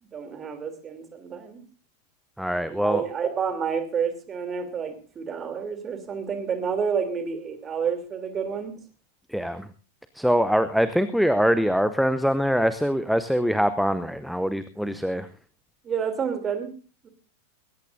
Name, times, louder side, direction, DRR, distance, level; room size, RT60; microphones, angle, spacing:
voice 1, 0.1-1.6 2.7-8.8 15.8-16.7 17.0-17.1, right 6 dB, 25° right, 8 dB, 3.2 m, -29 dB
voice 2, 2.4-3.0 9.3-9.7 10.1-15.3, equal, ahead, 13 dB, 0.8 m, -23 dB
20.5 x 17.5 x 2.7 m, 0.35 s
figure-of-eight pair, 90°, 0 cm